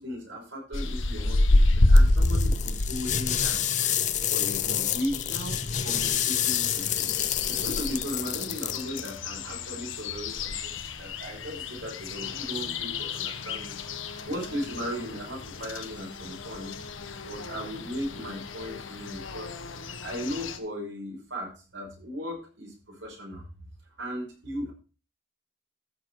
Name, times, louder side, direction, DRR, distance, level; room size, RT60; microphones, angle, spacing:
voice 1, 0.0-4.0 4.3-19.5 20.0-23.7 24.0-24.7, equal, 80° right, 0 dB, 6.0 m, -37 dB
sound 1, 0.7-3.8 4.1-20.6, left 2 dB, 90° left, 1.2 m, -29 dB
sound 2, 1.9-9.2, left 10 dB, 40° left, 0.7 m, -29 dB
14.5 x 6.7 x 4.7 m, 0.35 s
head